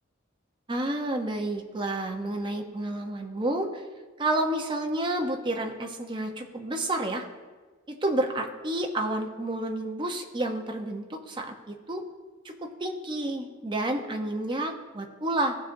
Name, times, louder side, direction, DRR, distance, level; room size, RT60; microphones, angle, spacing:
voice 1, 0.7-3.8 4.2-7.3 7.9-12.0 12.4-15.6, right 1 dB, 25° right, 3 dB, 0.6 m, -30 dB
15.0 x 5.1 x 2.6 m, 1.4 s
head